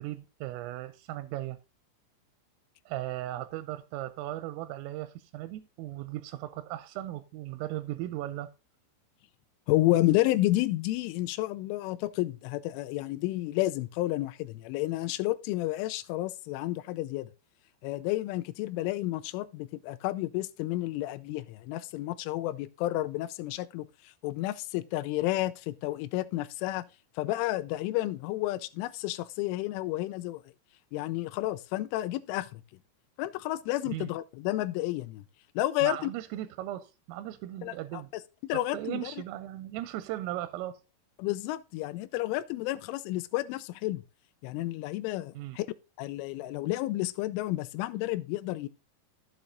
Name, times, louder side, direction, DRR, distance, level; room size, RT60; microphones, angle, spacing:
voice 1, 0.0-1.6 2.9-8.5 33.9-34.1 35.8-38.1 38.7-40.8 45.4-45.6, right 15 dB, 85° right, 3.2 m, -37 dB
voice 2, 9.7-17.3 17.8-23.9 24.2-26.8 27.2-30.4 30.9-32.6 33.2-35.2 35.6-36.1 37.6-38.0 38.4-39.1 41.2-44.0 44.4-45.7 46.0-48.7, left 16 dB, 85° left, 2.9 m, -31 dB
14.5 x 7.0 x 2.6 m
omnidirectional pair, 5.9 m